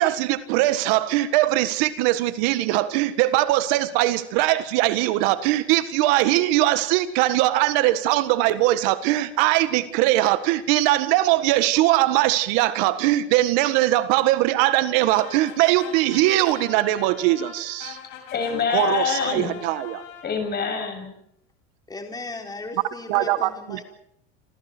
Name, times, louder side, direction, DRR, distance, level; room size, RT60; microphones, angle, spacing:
voice 1, 0.0-18.0 18.7-20.0 23.1-23.8, right 15 dB, 65° right, 11 dB, 1.7 m, -21 dB
sound 1, 15.1-20.7, left 9 dB, 65° left, 6.7 m, -42 dB
voice 2, 18.3-19.6 20.2-21.2, left 6 dB, 30° left, 6 dB, 7.5 m, -25 dB
voice 3, 21.9-23.8, left 3 dB, 10° left, 3 dB, 3.9 m, -36 dB
27.5 x 27.0 x 4.5 m, 0.70 s
supercardioid pair, 130°, 31 cm